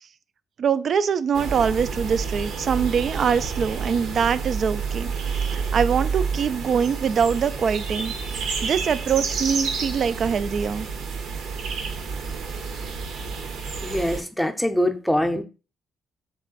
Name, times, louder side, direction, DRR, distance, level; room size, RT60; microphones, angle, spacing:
voice 1, 0.6-5.1 5.5-8.1 8.6-10.9, right 7 dB, 55° right, 0.3 m, -23 dB
sound 1, 1.3-14.2, right 5 dB, 80° right, 0.7 m, -29 dB
voice 2, 13.8-15.4, left 1 dB, 5° left, 0.6 m, -23 dB
3.5 x 3.2 x 3.8 m
cardioid pair, 90°, 0 cm